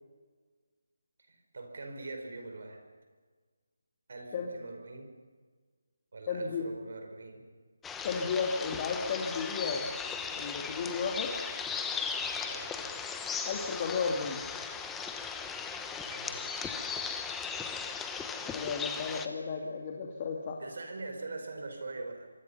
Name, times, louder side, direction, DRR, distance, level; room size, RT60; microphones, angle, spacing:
voice 1, 1.3-2.8 4.1-5.1 6.1-7.4 12.4-12.8 16.0-16.5 20.6-22.3, right 3 dB, 60° right, 5 dB, 5.4 m, -43 dB
voice 2, 6.3-6.7 8.0-9.8 10.4-11.3 13.4-14.4 18.4-20.6, left 5 dB, 30° left, 0 dB, 2.6 m, -33 dB
sound 1, 7.8-19.3, left 5 dB, 5° left, 1.1 m, -37 dB
26.0 x 24.0 x 5.8 m, 1.5 s
figure-of-eight pair, 160°, 0 cm